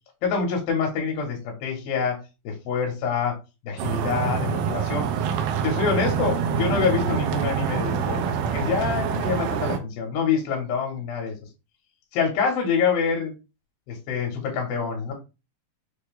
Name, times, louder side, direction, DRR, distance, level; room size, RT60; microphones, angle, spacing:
voice 1, 0.2-2.2 2.4-3.4 3.6-5.1 5.6-11.3 12.1-13.3 13.9-15.1, left 5 dB, 75° left, 1 dB, 3.1 m, -26 dB
sound 1, 3.8-9.8, right 7 dB, 80° right, 2.2 m, -26 dB
6.6 x 2.3 x 3.5 m, 0.28 s
omnidirectional pair, 4.3 m